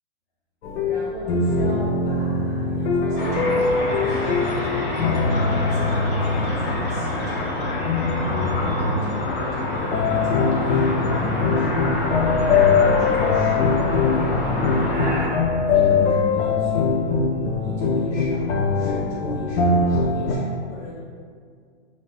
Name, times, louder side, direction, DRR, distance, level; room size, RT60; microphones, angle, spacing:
sound 1, 0.6-9.1 9.9-20.4, left 4 dB, 85° left, 0.5 m, -22 dB
voice 1, 0.8-4.6 4.9-7.6 8.1-8.7 9.0-11.9 12.7-14.2 15.0-17.1 17.5-21.0, equal, 5° left, -14 dB, 0.6 m, -38 dB
sound 2, 3.1-16.9, right 2 dB, 45° right, 0.7 m, -39 dB
sound 3, 3.2-15.3, left 2 dB, 60° left, 0.9 m, -27 dB
2.4 x 2.2 x 3.5 m, 2.1 s
hypercardioid pair, 175°, 33 cm